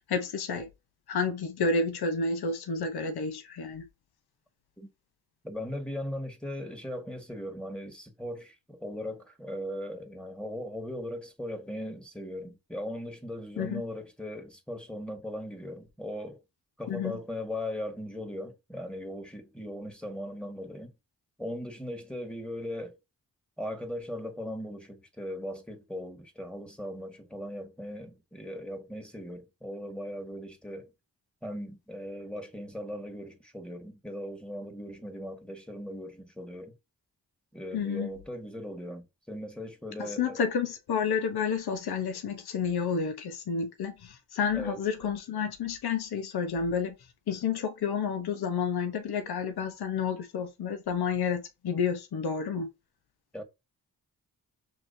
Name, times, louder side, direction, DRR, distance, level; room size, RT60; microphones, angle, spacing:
voice 1, 0.1-0.7 1.1-3.8 13.6-13.8 16.9-17.2 37.7-38.1 40.0-47.0 47.3-52.7, left 5 dB, 65° left, 0.9 m, -30 dB
voice 2, 5.4-16.4 16.8-20.9 21.4-23.0 23.6-30.9 31.4-36.7 37.5-40.4 44.5-44.8 53.3-53.4, left 1 dB, ahead, 1.6 m, -38 dB
6.0 x 2.9 x 2.7 m
supercardioid pair, 40°, 40 cm